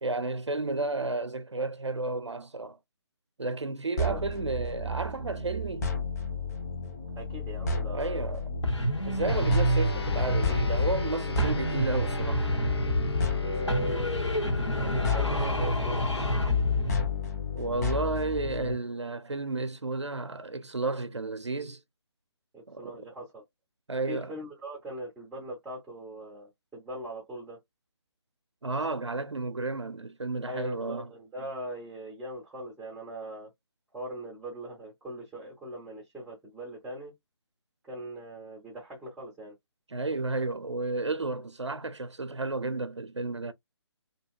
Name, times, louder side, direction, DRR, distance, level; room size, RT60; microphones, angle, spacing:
voice 1, 0.0-2.8 3.4-5.9 7.9-8.4 9.1-12.5 17.5-21.8 22.7-22.9 23.9-24.3 28.6-31.1 39.9-43.5, right 3 dB, 80° right, 0.6 m, -32 dB
sound 1, 4.0-18.7, left 3 dB, 40° left, 1.1 m, -33 dB
voice 2, 7.2-8.4 13.4-14.1 14.7-16.0 22.5-23.4 24.1-27.6 30.4-33.5 33.9-37.1 37.8-39.5, right 1 dB, 5° right, 0.5 m, -40 dB
sound 2, 8.6-11.1 11.4-13.4 13.7-17.1, left 1 dB, 85° left, 1.1 m, -28 dB
sound 3, 9.3-19.0, left 3 dB, 60° left, 1.0 m, -39 dB
2.8 x 2.7 x 2.4 m
figure-of-eight pair, 145°, 15 cm